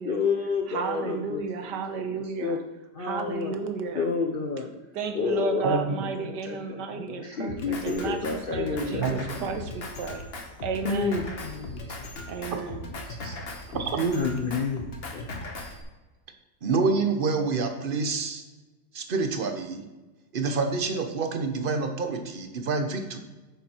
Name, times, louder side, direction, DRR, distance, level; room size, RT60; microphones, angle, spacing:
voice 1, 0.0-1.4 1.7-1.8 2.1-2.6 2.9-3.5 3.9-4.7 5.1-5.8 6.2-9.5 10.8-12.3 12.9-13.3 14.1-15.3, left 4 dB, 60° left, 3 dB, 0.5 m, -30 dB
voice 2, 0.7-2.6 3.0-4.1 4.9-10.2 10.6-11.2 12.3-12.9, right 4 dB, 80° right, 7 dB, 1.5 m, -33 dB
voice 3, 5.6-6.0 9.0-9.2 13.7-14.2 16.6-18.4 18.9-19.9 20.3-23.2, right 4 dB, 45° right, 6 dB, 0.8 m, -27 dB
Drum kit, 7.5-15.8, left 2 dB, 40° left, 1.1 m, -38 dB
9.0 x 7.0 x 4.4 m, 1.2 s
omnidirectional pair, 1.9 m